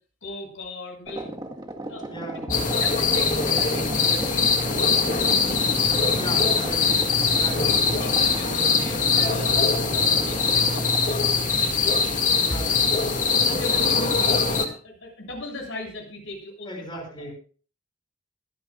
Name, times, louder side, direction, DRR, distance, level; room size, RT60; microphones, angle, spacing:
voice 1, 0.2-1.3 1.8-5.4 5.8-6.6 6.8-7.0 7.4-11.8 12.5-13.0 13.5-17.3, left 2 dB, 75° left, 0 dB, 7.3 m, -38 dB
sound 1, 1.1-11.4, right 1 dB, 20° right, 1.8 m, -36 dB
voice 2, 2.1-2.4 6.1-7.1 7.3-7.8 12.4-13.1 16.7-17.3, equal, 25° left, 0 dB, 6.2 m, -37 dB
sound 2, 2.5-14.7, left 5 dB, 40° left, 2.2 m, -22 dB
26.0 x 9.8 x 2.5 m, 0.39 s
head